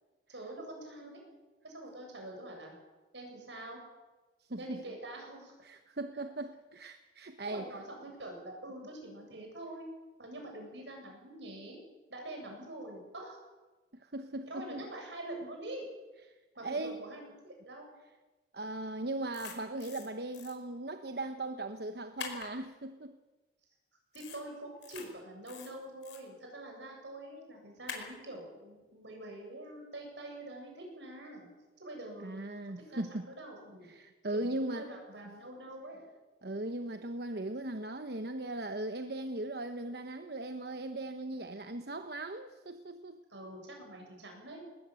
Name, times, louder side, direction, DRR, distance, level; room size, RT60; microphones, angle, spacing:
voice 1, 0.3-1.2 1.6-2.7 3.1-3.8 4.6-5.5 7.4-9.9 10.2-11.8 12.1-13.4 14.5-15.9 16.6-17.9 24.1-31.5 31.8-33.9 34.3-36.0 43.3-44.7, right 1 dB, 85° right, 2 dB, 7.6 m, -45 dB
voice 2, 4.4-4.8 5.6-7.7 13.9-14.9 16.6-17.0 18.5-23.2 32.2-33.3 33.9-34.9 36.4-43.2, right 2 dB, 60° right, 8 dB, 1.0 m, -38 dB
sound 1, 19.3-20.1 20.3-20.5 22.2-22.5 24.1-24.4 24.8-25.0 25.5-26.2 27.9-28.1, left 6 dB, 85° left, 4.8 m, -44 dB
20.0 x 20.0 x 7.8 m, 1.2 s
head